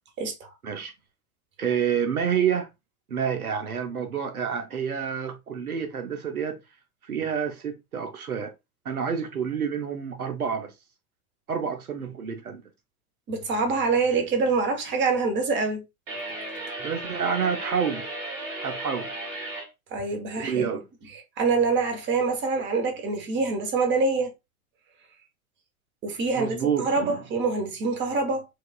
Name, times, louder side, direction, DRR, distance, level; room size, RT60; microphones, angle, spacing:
voice 1, 0.2-0.5 13.3-15.8 19.9-20.8 21.1-24.3 26.0-28.5, right 4 dB, 25° right, 1.0 m, -25 dB
voice 2, 1.6-2.7 3.1-6.6 7.0-8.5 8.8-10.7 11.5-12.6 16.8-18.1 18.6-19.1 20.4-20.8 26.3-27.2, right 7 dB, 90° right, 0.7 m, -28 dB
sound 1, 16.1-19.7, right 2 dB, 65° right, 1.7 m, -35 dB
4.7 x 2.4 x 2.2 m
figure-of-eight pair, 95°, 43 cm